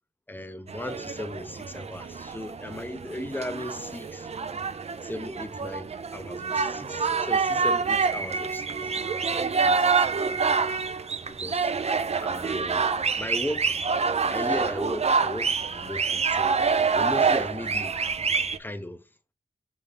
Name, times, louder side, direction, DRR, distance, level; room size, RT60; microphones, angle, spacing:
voice 1, 0.3-4.3 5.0-8.9 9.6-9.9 10.5-10.6 11.3-11.7 12.2-12.9 13.2-13.8 14.3-16.5 17.0-18.0 18.6-19.0, left 1 dB, 10° left, 0.6 m, -36 dB
sound 1, 0.7-18.6, right 5 dB, 40° right, 0.4 m, -27 dB
5.4 x 5.4 x 3.3 m
wide cardioid pair, 130°, 16 cm